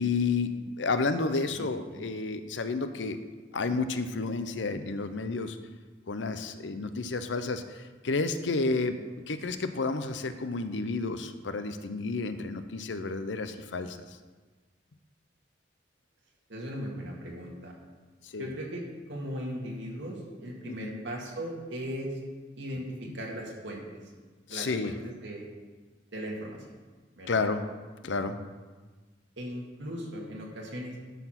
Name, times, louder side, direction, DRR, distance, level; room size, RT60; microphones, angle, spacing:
voice 1, 0.0-3.2 3.5-5.6 6.1-9.0 9.3-14.2 18.2-18.5 20.6-21.0 24.5-24.9 27.3-27.6 28.0-28.4, left 3 dB, 85° left, 10 dB, 0.7 m, -31 dB
voice 2, 1.5-2.1 16.5-17.7 18.4-18.8 19.1-22.2 22.6-24.0 24.5-25.5 26.1-26.7 27.2-27.5 29.4-31.0, equal, 80° right, -2 dB, 2.0 m, -38 dB
11.5 x 4.7 x 5.8 m, 1.3 s
head